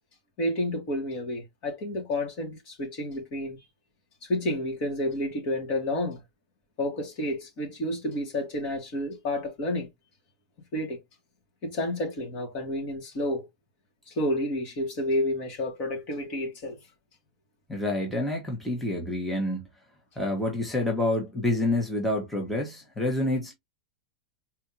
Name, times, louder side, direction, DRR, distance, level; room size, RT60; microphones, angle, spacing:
voice 1, 0.4-3.6 4.2-6.2 6.8-9.9 10.7-11.0 11.6-13.5 14.1-16.8, left 1 dB, 45° left, 2.7 m, -30 dB
voice 2, 17.7-19.6 20.1-23.5, left 1 dB, 5° left, 1.5 m, -28 dB
4.3 x 3.5 x 2.9 m
supercardioid pair, 145°, 3 cm